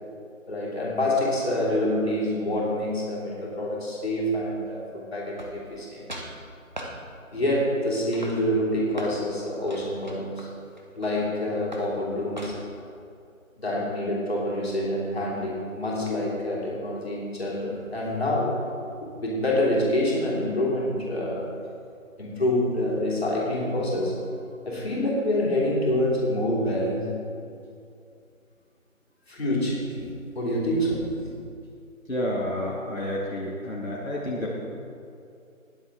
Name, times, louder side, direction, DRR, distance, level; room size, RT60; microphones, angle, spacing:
voice 1, 0.5-6.0 7.3-10.5 10.9-12.5 13.6-18.6 19.0-21.5 22.2-24.2 24.6-27.2 29.3-30.1 30.3-31.3, left 1 dB, 50° left, -5 dB, 3.2 m, -26 dB
sound 1, 5.4-5.8 6.1-6.3 6.8-7.0 7.5-7.8 8.1-9.2 9.7-11.3 11.7-11.9 12.4-12.8, equal, 35° right, 1.1 m, -39 dB
voice 2, 32.1-34.5, left 1 dB, 75° left, -5 dB, 2.4 m, -30 dB
20.0 x 7.9 x 3.7 m, 2.5 s
figure-of-eight pair, 175°, 41 cm